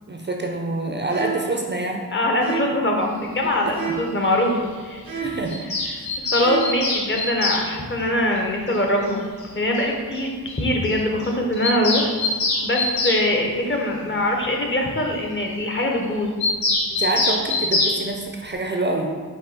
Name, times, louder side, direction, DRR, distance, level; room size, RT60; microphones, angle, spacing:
voice 1, 0.1-2.1 3.4-3.5 5.2-5.6 5.8-6.1 17.0-19.1, right 2 dB, 30° right, 1 dB, 0.5 m, -26 dB
sound 1, 1.1-1.6 2.4-2.9 3.7-4.2 5.1-5.6 6.3-6.9, right 7 dB, 75° right, 0.8 m, -30 dB
voice 2, 2.1-4.6 4.8-5.3 6.3-9.2 9.5-12.1 12.6-16.3, left 1 dB, 35° left, 1 dB, 0.8 m, -23 dB
Bird vocalization bird call bird song, 5.5-7.6 9.1-9.2 9.4-9.5 9.8-9.9 10.2-10.3 10.5-10.6 10.8-11.0 11.2-13.2 16.4-18.0, left 2 dB, 80° left, 0.8 m, -23 dB
5.4 x 2.3 x 4.1 m, 1.5 s
cardioid pair, 60°, 36 cm